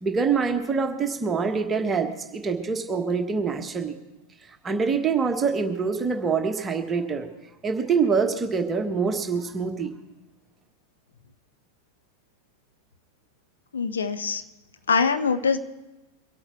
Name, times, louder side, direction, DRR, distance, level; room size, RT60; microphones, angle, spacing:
voice 1, 0.0-4.0 4.6-7.3 7.6-9.9, right 5 dB, 20° right, 4 dB, 1.3 m, -25 dB
voice 2, 13.7-14.4 14.9-15.6, left 5 dB, 70° left, 9 dB, 0.8 m, -23 dB
24.0 x 8.7 x 4.5 m, 1.1 s
figure-of-eight pair, 90°, 0 cm